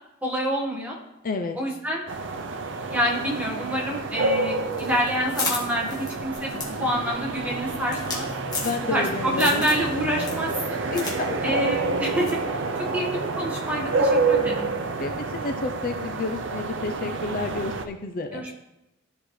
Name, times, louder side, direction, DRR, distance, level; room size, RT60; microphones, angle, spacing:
voice 1, 0.2-1.0 1.6-2.0 2.9-8.3 8.9-10.8 11.4-12.3 12.8-14.7 18.3-18.5, equal, 10° right, -3 dB, 1.5 m, -27 dB
voice 2, 1.2-1.6 8.6-9.7 10.8-11.5 15.0-18.4, left 3 dB, 45° left, 5 dB, 0.5 m, -30 dB
sound 1, 2.1-17.9, right 3 dB, 70° right, 0.6 m, -28 dB
sound 2, 4.7-9.1 9.4-9.9 10.2-11.2 11.4-11.5 12.2-12.4, left 3 dB, 20° left, 1.5 m, -33 dB
sound 3, 6.4-16.4, left 1 dB, 25° right, 1.2 m, -43 dB
13.0 x 4.6 x 3.2 m, 0.91 s
head